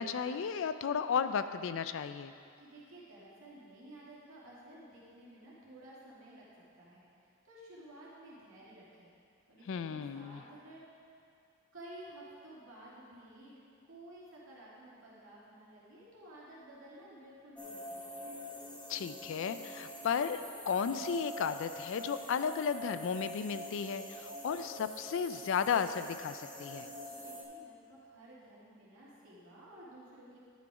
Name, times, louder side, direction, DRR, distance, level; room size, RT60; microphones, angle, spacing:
voice 1, 0.0-2.3 9.7-10.4 18.9-26.9, left 6 dB, 65° left, 11 dB, 0.4 m, -34 dB
voice 2, 2.6-6.4 6.8-7.0 7.4-9.1 9.5-10.9 11.7-13.6 13.9-18.4 27.1-30.4, right 1 dB, 70° right, -7 dB, 2.4 m, -53 dB
sound 1, 17.6-27.4, equal, 5° left, 0.9 m, -45 dB
10.5 x 6.2 x 4.8 m, 2.4 s
head